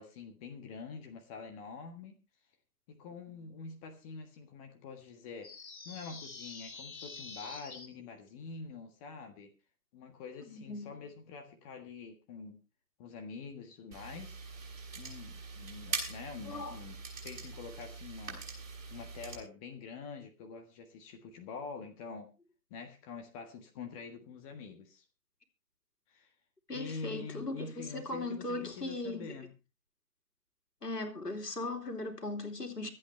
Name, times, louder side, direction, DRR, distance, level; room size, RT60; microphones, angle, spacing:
voice 1, 0.0-2.1 2.9-5.5 5.8-9.5 9.9-12.6 13.0-14.4 14.9-17.0 17.2-18.4 18.9-22.3 22.7-25.0 26.1-26.3 26.7-29.5, left 5 dB, 20° left, 1.6 m, -46 dB
sound 1, 5.4-7.9, left 4 dB, 60° left, 3.3 m, -47 dB
voice 2, 10.5-10.9 16.4-16.8 26.7-29.3 30.8-32.9, left 2 dB, 80° left, 3.0 m, -38 dB
sound 2, 13.9-19.4, right 4 dB, 55° right, 5.6 m, -42 dB
24.5 x 8.6 x 3.2 m
figure-of-eight pair, 135°, 47 cm